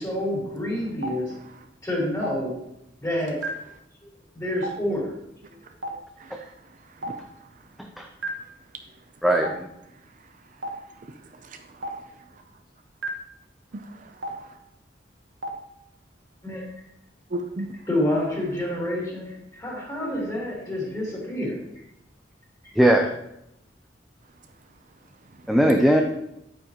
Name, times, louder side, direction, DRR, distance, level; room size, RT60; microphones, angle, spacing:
voice 1, 0.0-1.3 1.8-2.6 3.0-3.4 4.0-5.1 5.5-5.6 16.4-16.6 17.9-21.6, left 1 dB, 20° left, 3.7 m, -28 dB
Stream, 1.0-1.1 2.2-2.3 3.4-3.5 4.6-4.7 5.8-5.9 7.0-7.1 8.2-8.3 9.4-9.5 10.6-10.7 11.8-11.9 13.0-13.1 14.2-14.3 15.4-15.5, right 1 dB, 75° right, 1.3 m, -29 dB
voice 2, 6.2-6.5 7.0-7.2 11.1-12.0 13.7-14.6 17.3-17.7, right 1 dB, 45° right, 0.6 m, -37 dB
voice 3, 9.2-9.7 22.8-23.1 25.5-26.0, right 1 dB, ahead, 0.6 m, -19 dB
9.5 x 8.7 x 3.0 m
head